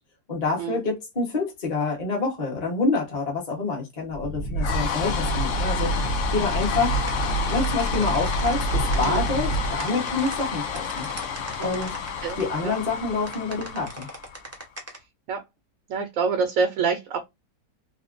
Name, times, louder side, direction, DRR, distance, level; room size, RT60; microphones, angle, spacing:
voice 1, 0.3-5.9 6.3-7.0 7.5-11.1 11.6-12.0 12.4-14.1, left 3 dB, 30° left, 1.0 m, -27 dB
sound 1, 4.1-14.6, left 1 dB, 65° left, 0.8 m, -27 dB
sound 2, 6.6-12.4 13.2-15.0, right 2 dB, 25° right, 0.3 m, -39 dB
voice 2, 8.9-9.3 11.6-11.8 12.2-12.8 15.3-15.4 15.9-17.2, right 5 dB, 65° right, 0.9 m, -27 dB
3.6 x 2.1 x 2.5 m
omnidirectional pair, 1.7 m